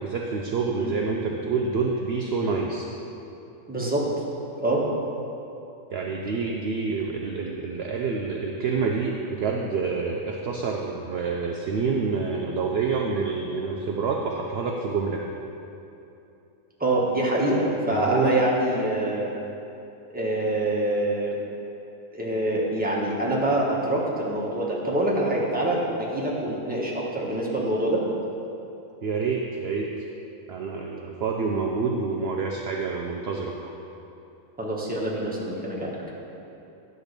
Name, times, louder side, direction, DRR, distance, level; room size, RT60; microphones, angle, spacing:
voice 1, 0.0-2.9 5.9-15.2 17.9-18.4 29.0-30.1 30.5-33.8, right 4 dB, 65° right, 0 dB, 0.6 m, -27 dB
voice 2, 3.7-4.1 4.6-4.8 16.8-19.3 20.1-21.4 22.1-28.0 34.6-35.9, right 1 dB, 5° right, -5 dB, 1.1 m, -25 dB
10.0 x 4.0 x 6.6 m, 2.9 s
omnidirectional pair, 1.6 m